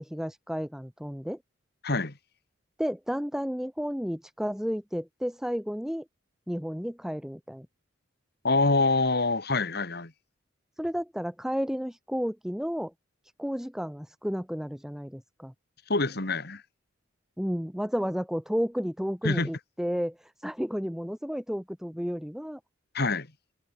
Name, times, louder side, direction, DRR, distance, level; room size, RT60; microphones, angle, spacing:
voice 1, 0.0-1.4 2.8-6.0 6.5-7.7 10.8-12.9 13.4-15.5 17.4-22.6, equal, ahead, 1.3 m, -32 dB
voice 2, 1.8-2.2 8.4-10.1 15.9-16.6 19.2-19.5 22.9-23.3, left 3 dB, 50° left, 2.4 m, -25 dB
head